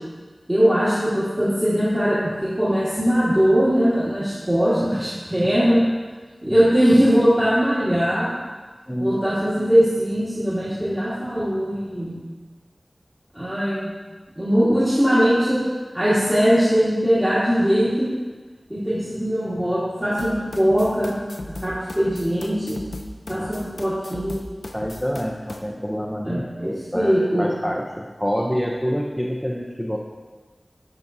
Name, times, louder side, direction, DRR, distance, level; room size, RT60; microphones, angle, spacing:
voice 1, 0.5-5.8 6.4-8.3 9.0-12.1 13.3-13.8 14.4-15.6 15.9-18.1 18.7-21.1 21.6-22.8 23.3-24.5 26.2-27.5, equal, 20° right, -11 dB, 1.5 m, -20 dB
voice 2, 8.9-9.2 23.3-23.5 24.7-30.0, equal, ahead, -1 dB, 0.5 m, -27 dB
sound 1, 20.2-25.6, left 1 dB, 75° left, 0.5 m, -37 dB
10.5 x 3.7 x 2.7 m, 1.4 s
wide cardioid pair, 50°, 0 cm